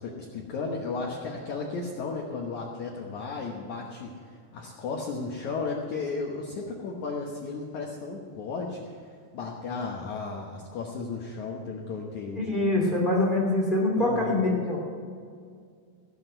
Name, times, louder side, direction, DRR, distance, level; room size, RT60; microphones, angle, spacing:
voice 1, 0.0-12.6 14.0-14.4, left 4 dB, 80° left, -1 dB, 1.7 m, -34 dB
voice 2, 12.3-14.8, left 2 dB, 15° left, -1 dB, 1.8 m, -24 dB
17.5 x 7.8 x 7.9 m, 2.2 s
omnidirectional pair, 5.2 m